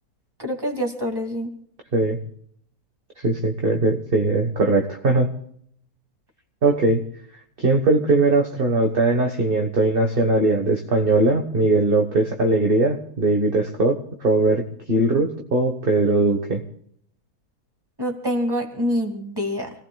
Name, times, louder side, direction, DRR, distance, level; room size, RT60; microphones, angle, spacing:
voice 1, 0.4-1.5 18.0-19.7, equal, 15° right, 2 dB, 2.4 m, -26 dB
voice 2, 3.2-5.3 6.6-7.0 7.6-16.6, right 2 dB, 40° right, 3 dB, 1.4 m, -20 dB
28.5 x 18.5 x 2.3 m, 0.67 s
omnidirectional pair, 1.6 m